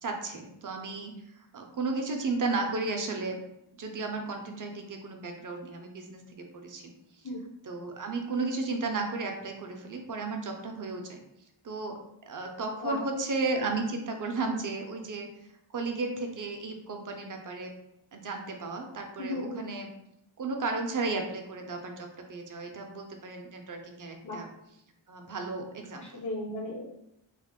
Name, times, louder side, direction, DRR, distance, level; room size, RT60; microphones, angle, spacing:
voice 1, 0.0-1.1 1.5-3.4 3.7-6.9 7.7-11.2 11.6-12.0 12.3-15.3 15.7-17.7 18.1-19.9 20.4-24.5 25.1-26.2, right 3 dB, 45° right, 3 dB, 0.5 m, -34 dB
voice 2, 19.2-19.6 24.2-24.4 25.9-26.9, left 2 dB, 40° left, -3 dB, 0.5 m, -35 dB
2.4 x 2.0 x 3.6 m, 0.83 s
wide cardioid pair, 100°, 47 cm